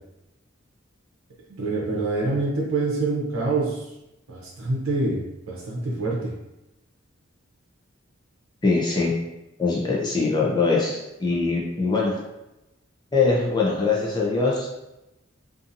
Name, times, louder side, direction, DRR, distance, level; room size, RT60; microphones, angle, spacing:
voice 1, 1.6-3.8 4.3-5.2 5.5-6.3, right 3 dB, 75° right, -4 dB, 0.6 m, -25 dB
voice 2, 8.6-9.1 9.6-12.2 13.1-14.7, left 3 dB, 20° left, -3 dB, 0.4 m, -22 dB
2.7 x 2.5 x 2.5 m, 0.94 s
head